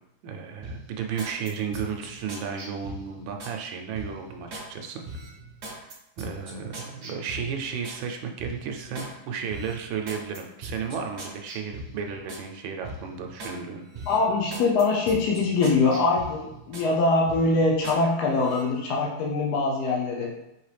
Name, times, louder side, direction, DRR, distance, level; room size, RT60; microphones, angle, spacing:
voice 1, 0.2-5.0 5.7-13.9, right 6 dB, 75° right, 4 dB, 1.2 m, -34 dB
sound 1, 0.6-3.6 3.9-4.7 5.0-8.0 8.4-9.1 9.5-12.5 12.8-13.6 13.9-16.9 17.3-18.0 18.4-18.6, right 2 dB, 60° right, 0.7 m, -41 dB
voice 2, 14.1-20.3, left 3 dB, 65° left, -2 dB, 1.0 m, -23 dB
4.8 x 3.0 x 3.2 m, 0.91 s
omnidirectional pair, 2.2 m